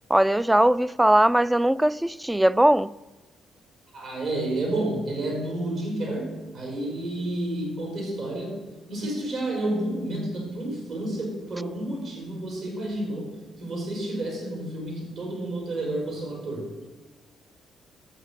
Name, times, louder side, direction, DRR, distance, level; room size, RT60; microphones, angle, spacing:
voice 1, 0.1-3.0, right 1 dB, 10° right, 0.3 m, -20 dB
voice 2, 3.9-13.3 13.6-16.7, right 1 dB, 65° right, 4.3 m, -30 dB
11.5 x 8.2 x 7.2 m
cardioid pair, 90°, 0 cm